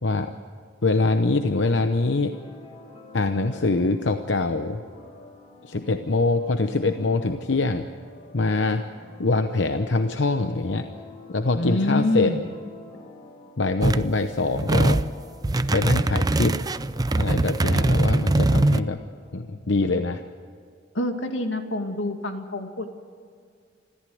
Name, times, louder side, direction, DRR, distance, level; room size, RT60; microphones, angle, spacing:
voice 1, 0.0-0.3 0.8-2.4 3.1-4.8 5.6-7.9 8.3-8.8 9.2-10.9 11.3-12.3 13.6-15.0 15.7-16.6 17.1-19.0 19.3-20.2, left 3 dB, 70° left, 8 dB, 0.9 m, -24 dB
sound 1, 2.3-19.5, left 2 dB, 30° left, 4.0 m, -48 dB
voice 2, 11.5-12.4 20.9-22.9, left 2 dB, 90° left, 5 dB, 2.3 m, -26 dB
sound 2, 13.8-14.1 14.5-15.1 15.4-18.8, right 2 dB, 20° right, 0.5 m, -22 dB
26.5 x 14.0 x 7.9 m, 2.2 s
head